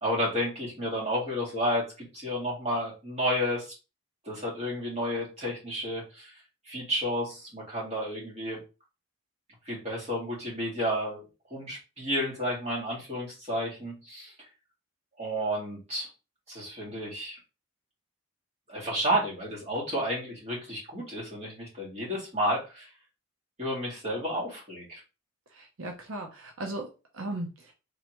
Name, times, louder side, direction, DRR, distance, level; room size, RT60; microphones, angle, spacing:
voice 1, 0.0-1.8 2.1-3.7 4.3-6.3 6.7-8.6 9.7-11.2 11.5-14.3 15.2-16.1 16.5-17.4 18.7-22.9 23.6-25.0, equal, 30° right, -4 dB, 2.1 m, -31 dB
voice 2, 25.5-27.7, right 1 dB, 75° right, 2 dB, 0.7 m, -37 dB
3.8 x 3.3 x 3.0 m, 0.30 s
head